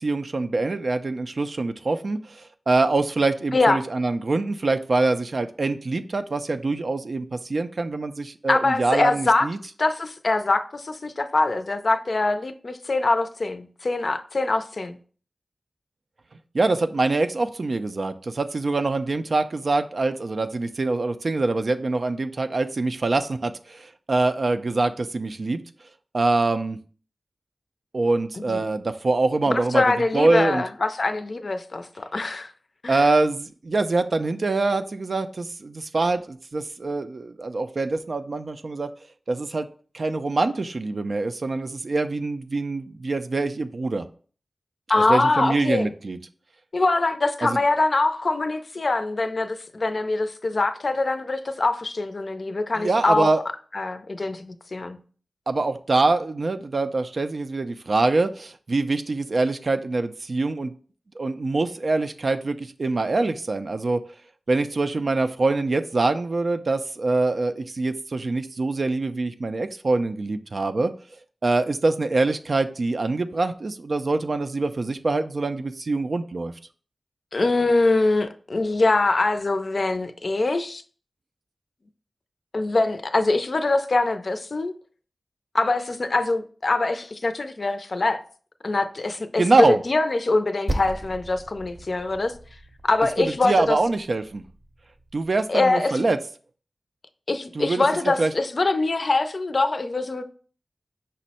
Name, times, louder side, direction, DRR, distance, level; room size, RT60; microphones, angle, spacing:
voice 1, 0.0-9.6 16.5-25.6 26.1-26.8 27.9-30.6 32.9-38.9 39.3-39.7 39.9-44.1 45.0-46.2 47.4-47.6 52.8-53.4 55.5-60.7 61.2-64.0 64.5-70.9 71.4-76.5 89.4-89.8 93.2-94.4 95.1-96.2 97.5-97.8 98.2-98.3, right 3 dB, 65° right, 0.3 m, -24 dB
voice 2, 8.5-9.5 9.8-15.0 28.5-28.6 29.5-32.5 32.8-33.1 44.9-45.9 46.7-53.3 53.7-55.0 77.3-80.8 82.5-84.7 85.5-88.2 88.6-92.3 92.9-93.8 95.5-96.1 97.3-100.2, left 2 dB, 60° left, 0.4 m, -23 dB
Percussion, 90.7-95.5, right 1 dB, 25° right, 0.6 m, -36 dB
5.2 x 2.0 x 4.1 m
cardioid pair, 45°, 0 cm